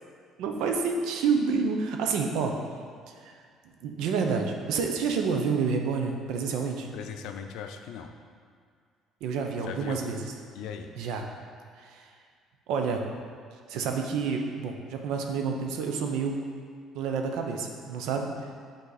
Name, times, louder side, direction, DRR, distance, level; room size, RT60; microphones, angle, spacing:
voice 1, 0.4-2.5 3.2-3.3 3.8-6.9 9.2-10.3 11.0-11.2 11.8-12.1 12.7-13.0 13.7-16.4 16.9-18.3, right 5 dB, 80° right, 3 dB, 0.8 m, -28 dB
voice 2, 6.9-8.1 9.6-10.0 10.5-10.9, left 7 dB, 80° left, 6 dB, 0.5 m, -39 dB
8.3 x 4.0 x 4.0 m, 2.1 s
cardioid pair, 130°, 0 cm